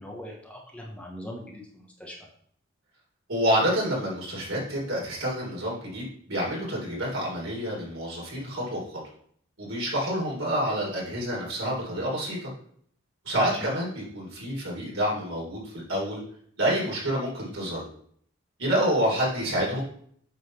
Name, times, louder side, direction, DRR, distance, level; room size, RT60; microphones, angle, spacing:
voice 1, 0.0-2.2 13.4-13.7, equal, 5° left, -1 dB, 1.2 m, -41 dB
voice 2, 3.3-9.0 9.6-12.5 13.2-16.2 16.6-17.8 18.6-19.8, equal, 80° right, -3 dB, 3.7 m, -28 dB
8.3 x 4.0 x 5.9 m, 0.62 s
head